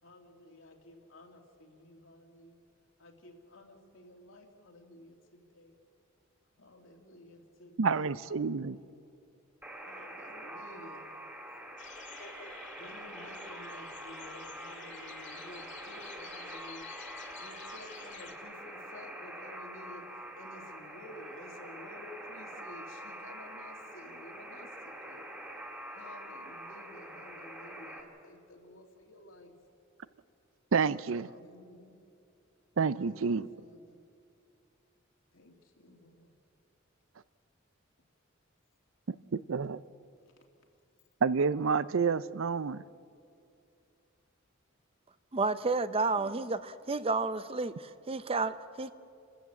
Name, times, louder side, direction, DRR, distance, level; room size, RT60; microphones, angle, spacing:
voice 1, 0.0-2.6 3.0-5.8 6.6-8.9 9.8-11.0 12.7-16.9 17.4-25.3 25.9-29.5 31.2-32.0 33.0-34.0 35.3-36.3 40.2-40.3 45.7-46.4, left 1 dB, 75° left, 2 dB, 2.7 m, -53 dB
voice 2, 7.8-8.8 30.7-31.3 32.8-33.5 39.1-39.8 41.2-42.8, right 5 dB, 75° right, 17 dB, 0.5 m, -29 dB
Alarm, 9.6-28.0, right 1 dB, 10° right, 2.5 m, -45 dB
sound 1, 11.8-18.3, left 6 dB, 60° left, 2.1 m, -50 dB
voice 3, 45.3-48.9, right 3 dB, 30° right, 13 dB, 0.6 m, -31 dB
29.0 x 13.5 x 8.3 m, 2.5 s
head